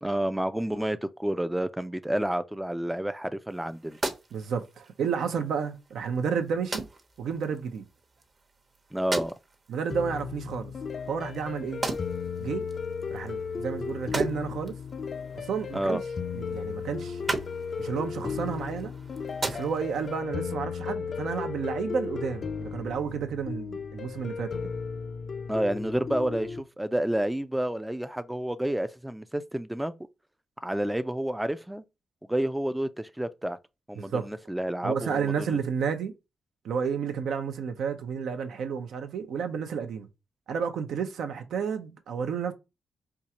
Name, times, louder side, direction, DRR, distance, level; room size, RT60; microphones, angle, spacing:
voice 1, 0.0-4.0 8.9-9.3 15.7-16.0 25.5-29.9 30.6-31.8 32.3-33.6 33.9-35.6, right 1 dB, 5° right, 0.4 m, -29 dB
sound 1, 3.5-20.1, right 3 dB, 45° right, 0.9 m, -39 dB
voice 2, 4.3-6.9 7.2-7.8 9.7-10.7 11.1-11.8 12.4-12.6 13.1-14.8 15.3-16.0 16.3-17.2 17.8-18.9 19.5-24.7 34.0-34.3 34.8-36.1 36.6-40.1 40.5-42.5, right 6 dB, 80° right, 0.6 m, -31 dB
sound 2, 9.9-26.6, left 5 dB, 55° left, 0.4 m, -35 dB
4.5 x 2.4 x 2.8 m
cardioid pair, 65°, 0 cm